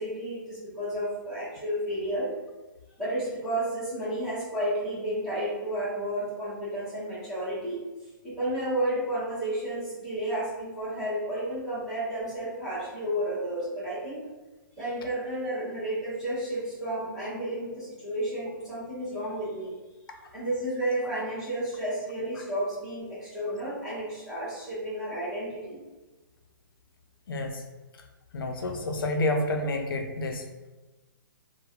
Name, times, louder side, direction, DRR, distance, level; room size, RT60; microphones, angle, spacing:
voice 1, 0.0-2.3 3.0-7.8 8.2-14.2 14.7-19.7 20.3-25.8, right 1 dB, 5° right, -12 dB, 0.8 m, -32 dB
voice 2, 27.3-27.6 28.3-30.4, left 1 dB, 85° left, 4 dB, 0.5 m, -29 dB
3.3 x 2.1 x 2.4 m, 1.2 s
hypercardioid pair, 175°, 12 cm